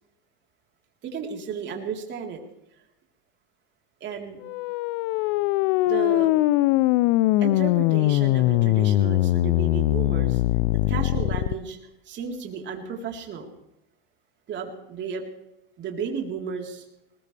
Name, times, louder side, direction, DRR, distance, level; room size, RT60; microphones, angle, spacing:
voice 1, 1.0-2.4 4.0-4.4 5.9-6.3 7.4-10.4 10.9-11.8 12.1-13.5 14.5-15.2 15.8-16.9, right 6 dB, 40° right, 2 dB, 3.9 m, -33 dB
sound 1, 4.4-11.5, left 17 dB, 60° left, 0.6 m, -21 dB
20.5 x 20.0 x 3.4 m, 0.85 s
supercardioid pair, 115°, 30 cm